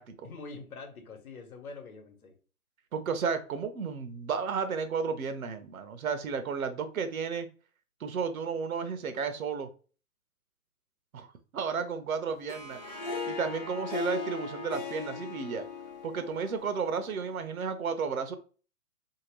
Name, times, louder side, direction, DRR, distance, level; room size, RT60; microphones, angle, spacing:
voice 1, 0.2-2.4, left 4 dB, 70° left, 5 dB, 1.0 m, -45 dB
voice 2, 2.9-7.5 8.0-9.7 11.1-12.8 13.3-15.7 16.0-18.4, right 5 dB, 70° right, 9 dB, 0.7 m, -33 dB
Harp, 12.3-17.5, left 4 dB, 30° left, 0.5 m, -38 dB
3.0 x 2.8 x 2.9 m, 0.37 s
hypercardioid pair, 140°, 44 cm